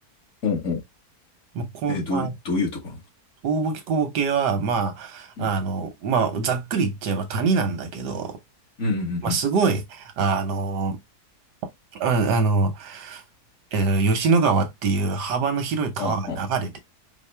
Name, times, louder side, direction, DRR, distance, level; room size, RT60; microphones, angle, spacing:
voice 1, 0.4-0.8 1.9-3.0 5.4-5.5 8.8-9.4 16.0-16.4, left 3 dB, 50° left, 1.6 m, -27 dB
voice 2, 1.5-2.3 3.4-8.4 9.2-11.0 12.0-13.2 13.7-16.8, right 4 dB, 90° right, 1.5 m, -24 dB
4.7 x 2.1 x 3.2 m
omnidirectional pair, 1.7 m